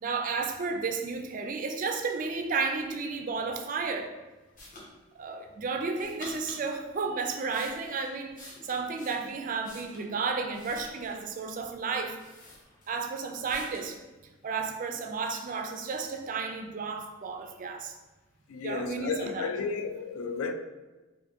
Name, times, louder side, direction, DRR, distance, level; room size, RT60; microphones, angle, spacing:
voice 1, 0.0-4.1 5.2-12.2 12.9-14.0 14.4-18.0 18.6-19.5, right 4 dB, 40° right, 0.3 m, -32 dB
sound 1, 4.6-4.9 6.0-6.6 7.2-10.1 10.5-11.3 11.8-11.9 12.2-13.1 13.5-13.9, left 1 dB, 35° left, 0.8 m, -48 dB
voice 2, 18.5-20.5, left 5 dB, 75° left, 0.3 m, -33 dB
4.8 x 2.5 x 2.7 m
head